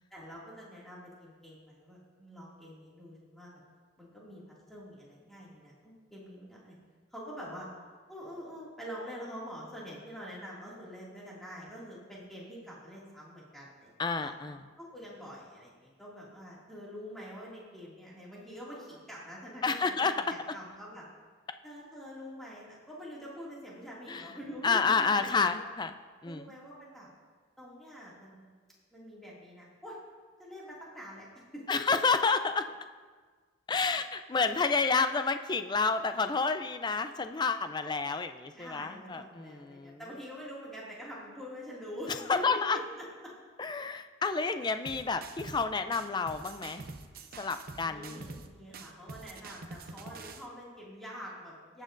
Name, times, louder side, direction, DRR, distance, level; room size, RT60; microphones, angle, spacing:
voice 1, 0.1-3.6 4.0-6.8 7.1-7.7 8.1-13.9 14.2-14.3 14.8-21.1 21.6-25.6 26.2-27.1 27.6-28.5 28.9-30.0 30.4-31.3 31.5-31.6 38.5-42.8 43.2-43.3 47.8-51.8, equal, ahead, -6 dB, 2.2 m, -45 dB
voice 2, 14.0-14.6 19.6-20.5 24.1-24.3 24.6-25.9 26.2-26.5 31.7-32.7 33.7-40.0 42.3-42.8 43.6-46.8 47.4-48.3, left 4 dB, 20° left, 9 dB, 0.3 m, -30 dB
sound 1, 44.9-45.7 45.9-48.5 48.7-50.5, right 3 dB, 45° right, 0.6 m, -45 dB
18.5 x 7.4 x 2.6 m, 1.5 s
head